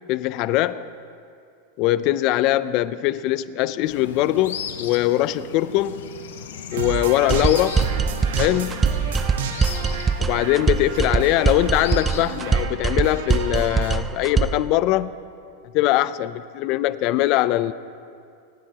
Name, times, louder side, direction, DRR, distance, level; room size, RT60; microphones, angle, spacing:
voice 1, 0.1-0.9 1.8-6.0 6.7-7.9 8.4-8.9 10.2-15.1 15.7-17.7, left 15 dB, 50° left, 0.4 m, -21 dB
sound 1, 3.8-12.6, left 8 dB, 85° left, 1.0 m, -37 dB
sound 2, 6.7-13.9, right 6 dB, 80° right, 1.2 m, -31 dB
sound 3, 7.3-14.7, right 5 dB, 15° right, 0.3 m, -23 dB
28.0 x 10.0 x 2.9 m
supercardioid pair, 130°, 0 cm